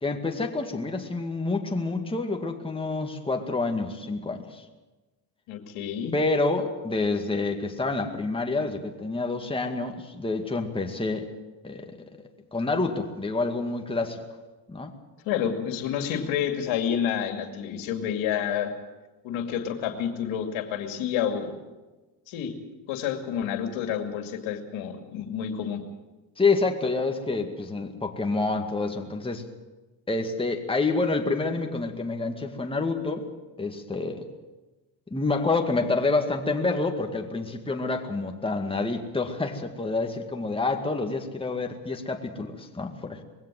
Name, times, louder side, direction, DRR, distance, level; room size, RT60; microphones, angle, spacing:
voice 1, 0.0-4.6 6.1-11.3 11.6-12.0 12.5-14.2 14.7-14.9 26.4-29.5 30.1-33.2 33.6-34.3 35.1-43.2, left 3 dB, 10° left, 3 dB, 2.0 m, -28 dB
voice 2, 5.5-6.1 15.2-18.7 19.2-21.6 22.3-22.5 22.9-25.8, left 8 dB, 75° left, 6 dB, 2.6 m, -29 dB
21.0 x 16.5 x 7.6 m, 1.2 s
cardioid pair, 95°, 47 cm